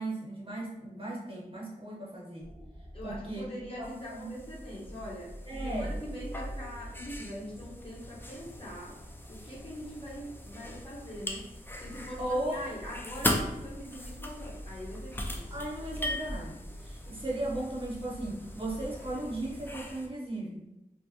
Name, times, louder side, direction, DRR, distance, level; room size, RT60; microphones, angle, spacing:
voice 1, 0.0-2.5 3.0-3.5 3.8-4.4 5.5-5.9 12.2-12.6 15.5-20.7, right 1 dB, 40° right, -3 dB, 0.7 m, -36 dB
sound 1, 2.4-19.9, equal, 85° left, 1.0 m, -45 dB
voice 2, 2.9-5.3 5.6-9.0 9.3-11.4 11.8-15.4, equal, 35° left, -5 dB, 0.9 m, -42 dB
sound 2, 3.8-20.1, left 1 dB, 15° left, 0.4 m, -40 dB
2.6 x 2.1 x 2.7 m, 0.95 s
wide cardioid pair, 45°, 15 cm